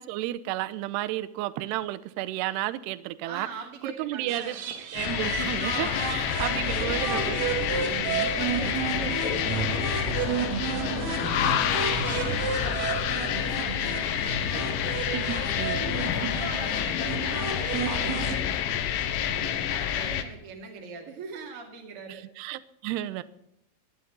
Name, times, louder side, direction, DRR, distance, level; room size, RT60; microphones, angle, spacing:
voice 1, 0.0-3.5 3.8-4.6 4.9-8.3 14.5-16.0 22.1-23.2, right 14 dB, 80° right, 15 dB, 2.5 m, -33 dB
voice 2, 3.2-4.8 5.8-6.1 6.6-14.7 15.1-18.9 19.2-22.2, right 4 dB, 40° right, -1 dB, 2.6 m, -42 dB
sound 1, 4.3-18.4, right 7 dB, 60° right, 2.8 m, -32 dB
sound 2, 5.0-20.2, left 10 dB, 80° left, 3.6 m, -28 dB
sound 3, 10.9-16.3, left 5 dB, 40° left, 1.4 m, -46 dB
16.5 x 11.5 x 5.3 m, 0.80 s
omnidirectional pair, 5.5 m